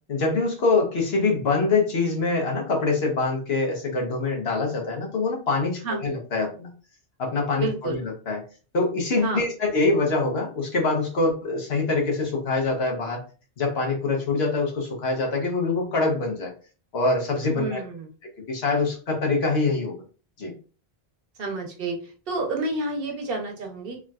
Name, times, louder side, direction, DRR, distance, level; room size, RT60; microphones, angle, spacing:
voice 1, 0.1-6.7 7.2-8.4 8.7-13.2 13.6-16.5 16.9-17.8 18.5-19.9 20.4-20.5, left 3 dB, 85° left, 0 dB, 1.2 m, -24 dB
voice 2, 7.6-8.0 9.2-9.4 17.5-18.1 21.4-22.0 22.3-24.0, right 3 dB, 65° right, 2 dB, 1.0 m, -29 dB
3.5 x 2.6 x 2.3 m, 0.37 s
omnidirectional pair, 1.0 m